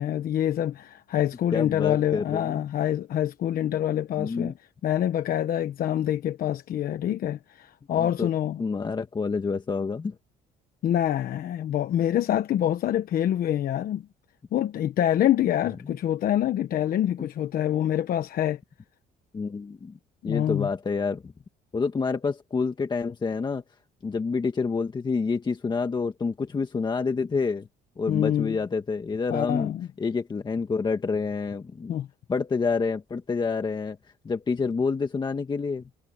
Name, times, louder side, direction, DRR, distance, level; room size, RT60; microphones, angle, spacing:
voice 1, 0.0-4.5 4.8-8.6 10.8-14.0 14.5-18.6 20.2-20.7 28.1-28.6 29.3-29.9 31.9-32.1, left 11 dB, 60° left, 1.2 m, -26 dB
voice 2, 1.5-2.6 4.2-4.5 7.9-8.3 8.6-10.1 15.8-16.0 17.2-17.3 19.3-19.9 20.2-21.3 21.7-23.6 24.0-27.7 28.0-29.7 30.0-31.9 32.3-34.0 34.2-35.8, left 4 dB, 25° left, 1.6 m, -28 dB
cardioid pair, 110°, 17 cm